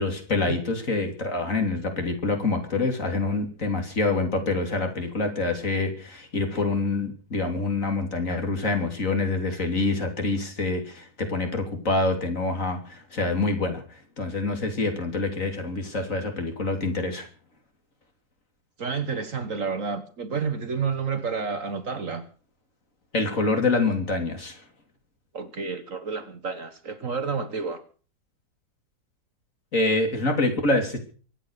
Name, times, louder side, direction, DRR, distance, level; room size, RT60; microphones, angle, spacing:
voice 1, 0.0-17.3 23.1-24.6 29.7-31.0, left 3 dB, 45° left, 5 dB, 3.4 m, -26 dB
voice 2, 18.8-22.2 25.3-27.8, right 5 dB, 50° right, 10 dB, 1.6 m, -30 dB
24.0 x 9.0 x 6.5 m, 0.40 s
omnidirectional pair, 1.9 m